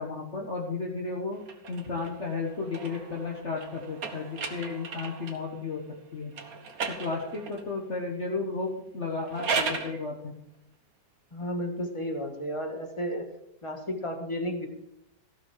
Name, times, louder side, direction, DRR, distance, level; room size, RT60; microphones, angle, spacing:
voice 1, 0.0-1.4 1.7-5.8 6.1-6.3 7.0-10.3, left 4 dB, 40° left, -1 dB, 1.8 m, -33 dB
sound 1, 1.4-5.5 6.3-7.7 9.1-10.0, right 5 dB, 55° right, 1.7 m, -35 dB
voice 2, 11.3-13.2 13.6-14.7, equal, 20° left, 4 dB, 1.7 m, -32 dB
15.0 x 6.1 x 7.4 m, 0.82 s
omnidirectional pair, 1.9 m